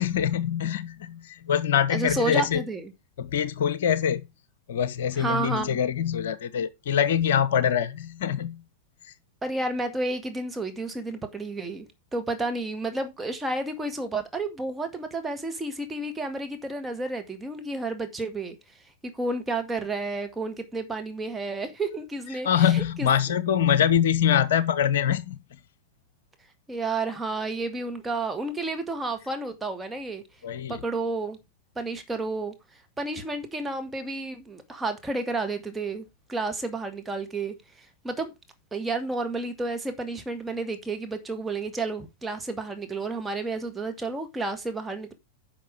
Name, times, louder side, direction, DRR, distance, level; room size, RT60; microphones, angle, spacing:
voice 1, 0.0-2.6 3.2-4.2 4.7-8.6 22.4-25.4 30.4-30.8, left 9 dB, 60° left, 0.7 m, -24 dB
voice 2, 1.9-2.9 5.2-5.8 9.4-11.9 12.1-18.6 19.1-23.1 26.7-30.2 30.7-31.4 31.8-32.5 33.0-37.5 38.0-38.3 38.7-45.1, right 2 dB, 10° right, 2.3 m, -31 dB
10.5 x 5.8 x 4.9 m
figure-of-eight pair, 90°, 0 cm